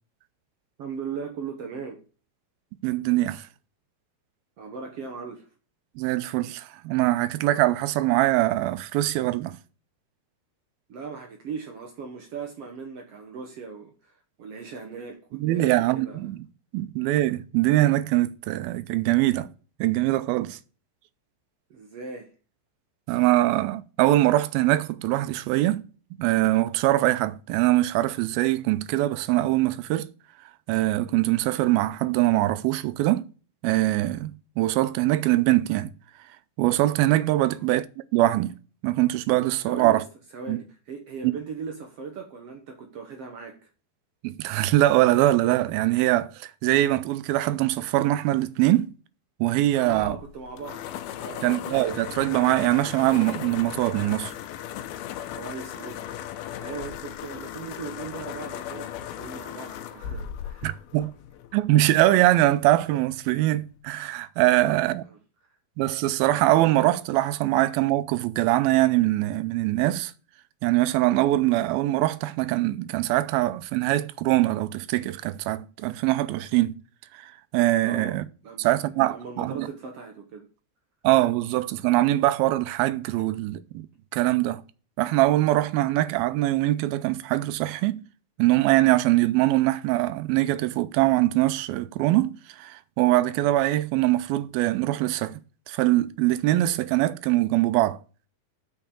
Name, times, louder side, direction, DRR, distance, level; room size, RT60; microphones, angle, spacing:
voice 1, 0.8-2.0 4.6-5.5 10.9-16.2 21.7-22.3 37.4-37.7 39.6-40.0 40.3-43.6 49.7-50.9 51.1-51.5 55.3-56.0 56.6-60.7 64.6-64.9 77.8-78.2 78.4-78.8 79.1-80.5, right 5 dB, 70° right, 1.4 m, -38 dB
voice 2, 2.8-3.5 6.0-9.6 15.3-16.5 16.7-19.5 19.8-20.6 23.1-25.9 26.2-30.1 30.7-33.3 33.6-35.9 36.6-38.5 38.8-40.0 40.5-40.6 41.2-41.4 44.2-48.9 49.4-50.2 51.4-54.3 60.6-61.1 61.5-65.0 65.8-70.1 70.6-76.7 77.2-78.2 78.6-79.7 81.0-83.9 84.1-84.6 85.0-88.0 88.4-95.4 95.7-98.0, right 16 dB, 85° right, 2.5 m, -23 dB
sound 1, 49.9-61.7, left 10 dB, 90° left, 2.6 m, -37 dB
6.6 x 5.7 x 6.8 m
omnidirectional pair, 4.2 m